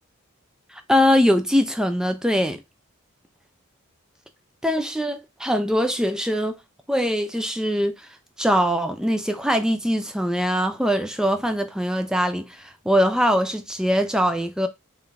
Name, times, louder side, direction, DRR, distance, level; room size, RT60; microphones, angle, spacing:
voice 1, 0.9-2.6 4.6-6.6 6.9-8.0 8.4-12.5 12.9-14.7, equal, 5° right, 0.4 m, -22 dB
3.8 x 2.6 x 3.4 m
head